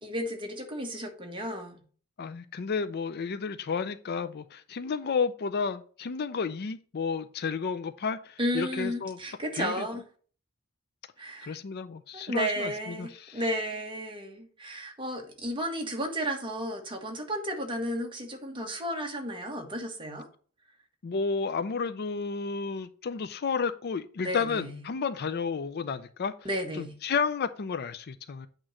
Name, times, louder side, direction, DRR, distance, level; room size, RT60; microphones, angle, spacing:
voice 1, 0.0-1.8 8.4-10.0 11.2-11.6 12.1-20.3 24.2-24.8 26.4-26.9, equal, 25° right, 1.4 m, -33 dB
voice 2, 2.2-9.2 9.5-9.8 11.4-13.4 21.0-26.3 26.7-28.5, left 5 dB, 45° left, 0.4 m, -32 dB
8.7 x 3.1 x 6.2 m
head